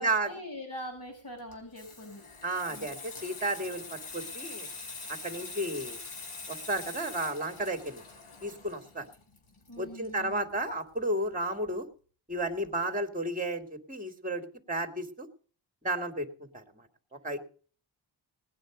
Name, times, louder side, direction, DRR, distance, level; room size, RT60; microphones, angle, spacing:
voice 1, 0.0-2.2 2.7-2.9 9.7-10.4, left 1 dB, 45° left, 0 dB, 5.9 m, -43 dB
Water tap faucet / Sink (filling or washing), 1.4-10.7 11.0-11.2, left 3 dB, 85° left, 4.7 m, -44 dB
voice 2, 2.4-4.7 5.1-6.0 6.5-8.0 8.4-9.0 9.8-11.8 12.3-15.3 15.8-16.3 16.5-16.9 17.2-17.4, right 1 dB, 15° right, 6 dB, 2.8 m, -33 dB
19.5 x 9.7 x 5.2 m, 0.43 s
cardioid pair, 70°, 48 cm